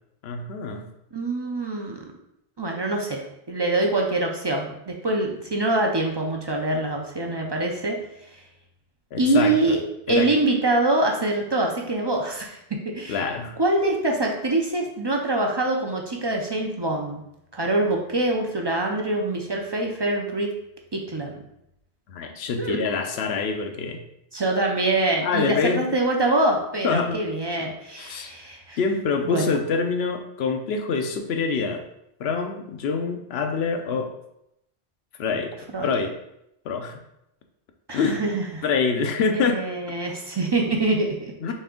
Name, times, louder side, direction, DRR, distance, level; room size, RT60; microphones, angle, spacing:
voice 1, 0.2-0.9 9.1-9.8 10.1-10.3 13.1-13.6 22.1-24.0 25.2-25.8 26.8-27.2 28.0-28.3 28.8-31.8 32.2-34.1 35.2-35.5 35.8-36.1 36.6-37.0 37.9-38.2 38.6-39.7 41.4-41.5, left 5 dB, 75° left, 5 dB, 0.9 m, -25 dB
voice 2, 1.1-2.0 2.6-3.2 3.5-8.0 9.2-9.8 10.1-12.6 12.8-13.2 13.6-17.2 17.5-20.5 20.9-21.4 22.6-22.8 24.3-28.8 29.2-29.6 35.7-36.0 37.9-38.6 39.4-41.5, right 2 dB, 35° right, 1 dB, 0.4 m, -24 dB
4.2 x 3.4 x 3.7 m, 0.81 s
omnidirectional pair, 1.1 m